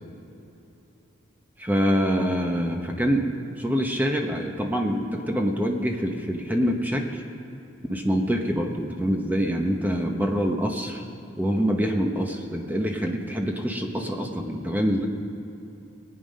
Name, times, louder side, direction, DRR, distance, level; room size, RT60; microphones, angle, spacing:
voice 1, 1.6-3.3 3.6-7.2 7.9-11.0 11.4-15.1, equal, 10° right, 2 dB, 0.9 m, -25 dB
20.0 x 9.2 x 5.3 m, 2.8 s
head